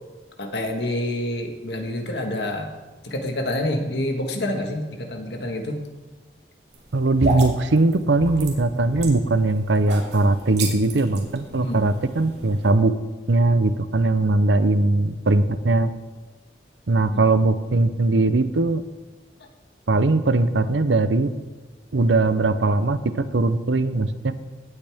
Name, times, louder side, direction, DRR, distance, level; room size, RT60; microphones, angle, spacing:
voice 1, 0.4-2.7 3.0-5.8 11.6-11.8 17.1-17.2, left 1 dB, 70° left, 4 dB, 1.6 m, -27 dB
sound 1, 6.7-12.7, right 1 dB, 70° right, 2.4 m, -32 dB
voice 2, 6.9-12.9 13.3-15.9 16.9-18.8 19.9-21.3 21.9-24.3, right 2 dB, 85° right, 12 dB, 0.7 m, -20 dB
17.5 x 8.1 x 3.6 m, 1.3 s
head